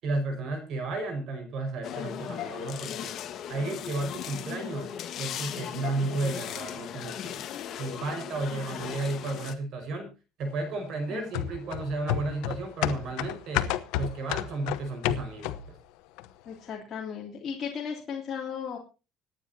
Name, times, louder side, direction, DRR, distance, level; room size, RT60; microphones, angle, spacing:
voice 1, 0.0-3.1 3.5-7.4 7.8-10.1 10.4-13.7 14.0-15.5, right 2 dB, 50° right, 7 dB, 5.3 m, -33 dB
sound 1, 1.8-9.5, left 10 dB, 50° left, 1.5 m, -37 dB
sound 2, 11.3-15.8 16.2-16.3, left 12 dB, 85° left, 1.0 m, -31 dB
voice 2, 16.4-18.8, left 7 dB, 35° left, -3 dB, 3.1 m, -35 dB
25.5 x 9.8 x 2.8 m, 0.31 s
cardioid pair, 150°, 0 cm